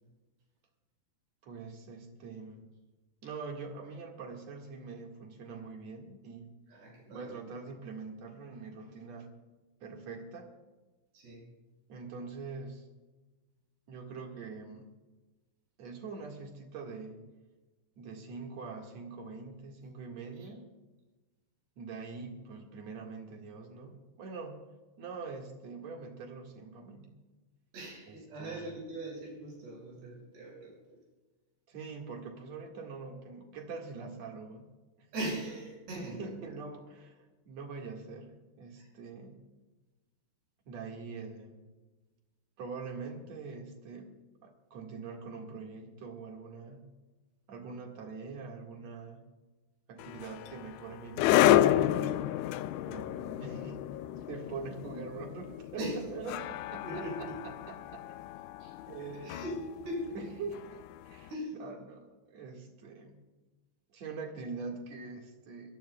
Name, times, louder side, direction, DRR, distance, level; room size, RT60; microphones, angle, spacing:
voice 1, 1.4-2.6 3.2-6.5 7.1-9.3 9.8-10.6 11.9-12.9 13.9-14.9 15.8-17.2 18.0-20.7 21.8-24.6 25.0-27.1 28.1-28.7 31.7-34.7 35.0-35.1 35.9-39.4 40.7-41.6 42.6-46.8 47.5-49.2 49.9-51.8 52.9-53.8 54.1-57.3 57.7-58.0 58.9-59.4 60.1-63.2 63.9-65.8, right 4 dB, 50° right, 1 dB, 2.5 m, -44 dB
voice 2, 6.7-7.3 11.1-11.4 20.4-20.5 27.7-31.0 35.1-36.6 38.8-38.9 55.8-56.1 56.8-57.4 58.6-58.7 59.2-60.2 61.3-61.6, right 1 dB, 70° right, -2 dB, 8.6 m, -40 dB
sound 1, 50.0-61.1, left 13 dB, 85° left, 2.6 m, -30 dB
24.5 x 18.0 x 2.3 m, 1.2 s
omnidirectional pair, 4.9 m